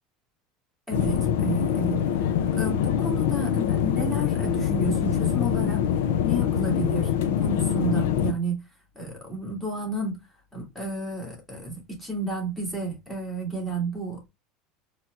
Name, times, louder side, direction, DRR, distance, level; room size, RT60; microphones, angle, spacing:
sound 1, 0.9-8.3, left 9 dB, 85° left, 0.4 m, -24 dB
voice 1, 0.9-5.9 6.2-8.6 9.0-10.2 10.5-14.3, right 2 dB, 5° left, 2.0 m, -32 dB
4.3 x 3.0 x 2.4 m
supercardioid pair, 145°, 0 cm